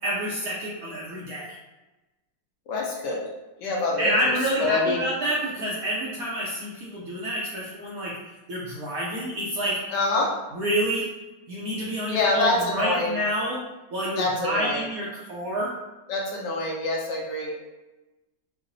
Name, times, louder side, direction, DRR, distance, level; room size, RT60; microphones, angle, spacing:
voice 1, 0.0-1.6 4.0-8.2 8.5-9.8 10.5-11.1 11.5-13.6 13.9-15.7, equal, 70° right, -5 dB, 0.8 m, -28 dB
voice 2, 2.7-3.2 3.6-5.0 9.9-10.3 12.1-13.2 14.2-14.9 16.1-17.6, left 2 dB, 70° left, -2 dB, 1.2 m, -26 dB
4.7 x 2.0 x 2.6 m, 1.1 s
omnidirectional pair, 2.1 m